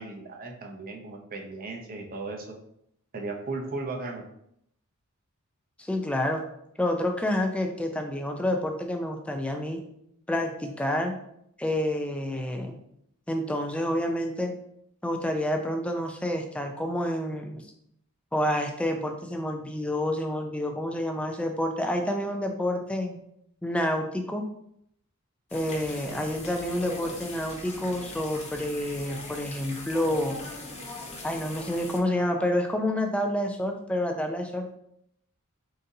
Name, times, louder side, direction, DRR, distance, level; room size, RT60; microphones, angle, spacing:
voice 1, 0.0-2.6 3.1-4.2, right 3 dB, 40° right, 2 dB, 0.6 m, -36 dB
voice 2, 5.8-6.4 6.8-9.8 10.3-11.1 11.6-12.8 13.3-14.5 15.0-17.7 18.3-23.2 23.6-24.4 25.5-30.4 31.2-34.7, left 1 dB, 5° left, 4 dB, 0.4 m, -28 dB
sound 1, 25.5-32.0, left 2 dB, 30° left, 0.7 m, -40 dB
4.0 x 3.8 x 2.7 m, 0.74 s
head